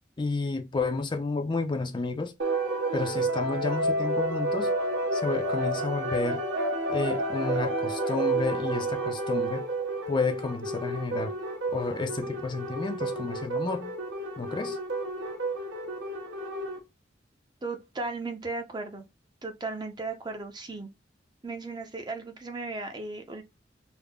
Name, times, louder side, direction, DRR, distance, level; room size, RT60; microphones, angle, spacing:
voice 1, 0.2-2.3 2.9-4.7 5.1-6.4 6.9-9.7 10.1-11.4 11.7-13.9 14.4-14.8, left 3 dB, 25° left, 0.4 m, -31 dB
sound 1, 2.4-16.8, right 1 dB, 90° right, 1.0 m, -30 dB
voice 2, 17.6-19.0 19.4-20.9 21.4-23.4, right 3 dB, 25° right, 0.6 m, -36 dB
3.5 x 2.0 x 3.5 m
head